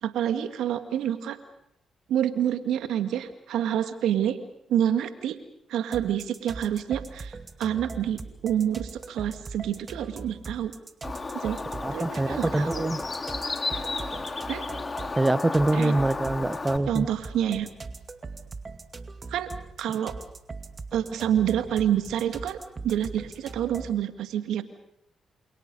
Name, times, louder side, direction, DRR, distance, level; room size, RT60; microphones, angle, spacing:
voice 1, 0.0-1.4 2.1-4.4 4.7-5.4 5.7-10.7 11.3-11.6 11.9-12.9 14.5-14.6 15.7-15.9 16.9-17.7 19.3-19.5 19.8-20.2 20.9-22.6 22.8-24.6, right 10 dB, 75° right, 9 dB, 1.9 m, -27 dB
sound 1, 5.9-24.0, right 3 dB, 40° right, 2.4 m, -41 dB
Bird, 11.0-16.8, left 3 dB, 35° left, 2.5 m, -33 dB
voice 2, 11.8-13.0 15.2-17.1, right 2 dB, 20° right, 16 dB, 0.9 m, -25 dB
28.0 x 28.0 x 5.4 m, 0.78 s
hypercardioid pair, 50°, 0 cm